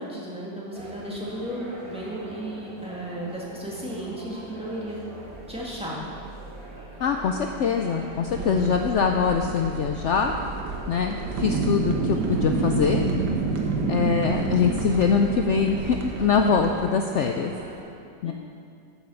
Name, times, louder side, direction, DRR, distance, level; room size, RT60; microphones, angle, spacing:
voice 1, 0.0-5.0 5.5-6.0 8.3-8.8 18.2-18.3, right 1 dB, 5° right, -6 dB, 1.8 m, -34 dB
sound 1, 0.7-17.8, right 1 dB, 35° right, 2.4 m, -43 dB
sound 2, 5.2-13.3, right 2 dB, 55° right, 2.3 m, -45 dB
voice 2, 7.0-10.3 10.9-13.1 13.9-17.5 18.2-18.3, left 6 dB, 75° left, 4 dB, 0.6 m, -23 dB
sound 3, 8.3-16.7, right 3 dB, 80° right, 1.7 m, -28 dB
8.8 x 7.2 x 7.0 m, 2.4 s
omnidirectional pair, 1.8 m